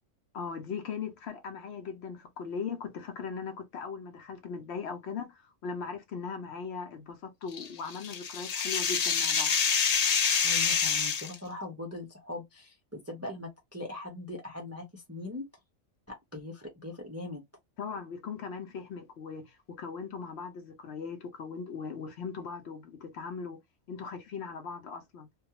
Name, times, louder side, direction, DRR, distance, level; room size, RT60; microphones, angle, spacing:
voice 1, 0.3-9.5 17.8-23.6 23.9-25.3, left 5 dB, 65° left, 0.8 m, -39 dB
sound 1, 7.5-11.3, left 6 dB, 85° left, 0.3 m, -27 dB
voice 2, 10.4-15.4 16.1-17.4, left 2 dB, 20° right, 0.4 m, -41 dB
2.3 x 2.2 x 2.8 m
omnidirectional pair, 1.3 m